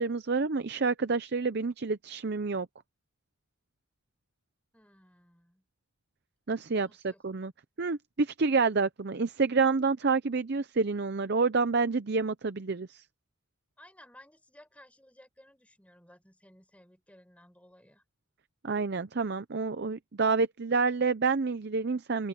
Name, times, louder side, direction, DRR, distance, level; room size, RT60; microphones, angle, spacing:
voice 1, 0.0-2.7 6.5-7.5 7.8-13.0 18.6-22.3, right 4 dB, 50° right, 0.6 m, -28 dB
voice 2, 4.7-5.6 6.8-7.2 13.8-18.0, left 1 dB, 5° left, 5.5 m, -57 dB
open air
head